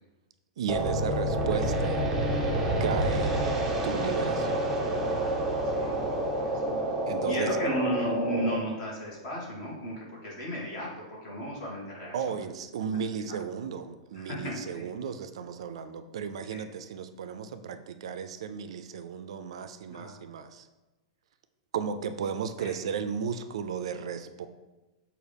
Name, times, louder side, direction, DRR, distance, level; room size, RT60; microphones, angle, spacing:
voice 1, 0.6-2.0 2.8-3.3 3.8-4.7 7.1-7.5 12.1-20.7 21.7-24.5, right 7 dB, 75° right, 9 dB, 0.3 m, -34 dB
sound 1, 0.7-8.5, right 1 dB, 15° right, 0.5 m, -28 dB
voice 2, 5.7-6.8 7.2-12.4 13.2-13.4 14.1-14.8 16.5-16.6 19.9-20.2 22.6-22.8, equal, 35° left, -4 dB, 1.4 m, -35 dB
6.0 x 2.4 x 3.3 m, 1.1 s
supercardioid pair, 170°, 3 cm